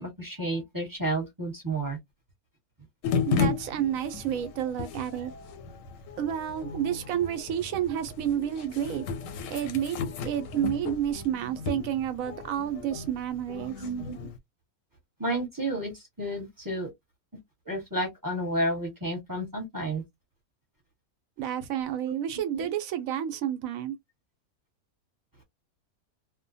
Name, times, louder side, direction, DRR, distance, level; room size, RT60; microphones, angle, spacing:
voice 1, 0.0-2.0 13.8-14.2 15.2-16.9 17.7-20.0 22.0-22.1 22.5-22.7, right 1 dB, 15° right, 0.9 m, -31 dB
sound 1, 3.0-14.4, left 5 dB, 70° left, 0.9 m, -34 dB
voice 2, 3.2-5.3 6.2-9.1 9.5-10.0 10.2-13.8 21.4-24.0, right 10 dB, 70° right, 1.0 m, -30 dB
2.6 x 2.1 x 2.6 m
omnidirectional pair, 1.6 m